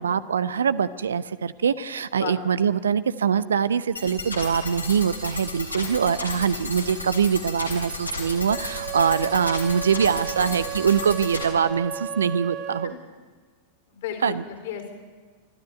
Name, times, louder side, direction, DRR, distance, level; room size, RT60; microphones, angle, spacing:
voice 1, 0.0-12.9 14.2-14.4, right 7 dB, 70° right, 16 dB, 0.7 m, -23 dB
sound 1, 4.0-11.4, left 2 dB, 85° left, 3.7 m, -34 dB
Wind instrument woodwind instrument, 8.5-13.0, right 10 dB, 30° right, 1.1 m, -35 dB
voice 2, 13.9-14.9, left 9 dB, 55° left, 6 dB, 3.7 m, -34 dB
24.5 x 13.0 x 9.5 m, 1.5 s
figure-of-eight pair, 90°, 0 cm